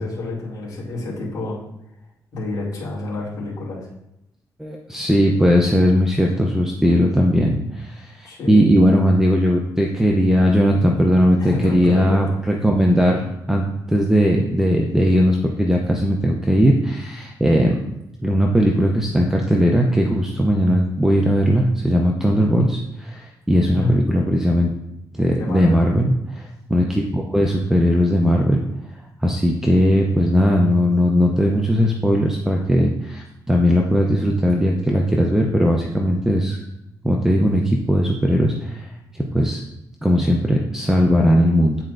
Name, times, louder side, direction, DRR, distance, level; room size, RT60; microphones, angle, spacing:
voice 1, 0.0-1.6 2.3-3.9 8.2-8.7 11.4-12.2 23.7-24.0 25.3-25.8, left 2 dB, 55° left, -7 dB, 2.5 m, -28 dB
voice 2, 4.6-17.8 18.2-24.7 25.2-28.6 29.2-36.6 37.0-38.9 39.1-39.6 40.0-41.8, equal, 5° right, 0 dB, 0.5 m, -18 dB
9.5 x 4.3 x 2.5 m, 0.85 s
cardioid pair, 130°, 7 cm